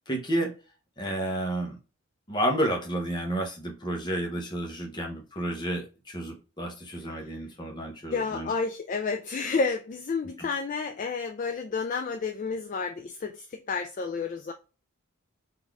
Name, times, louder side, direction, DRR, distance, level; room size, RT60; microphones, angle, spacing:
voice 1, 0.1-0.5 1.0-1.8 2.3-8.5 10.4-10.5, right 1 dB, 20° left, 1.0 m, -31 dB
voice 2, 8.1-14.5, left 4 dB, 35° left, 0.3 m, -30 dB
3.9 x 2.7 x 4.7 m
head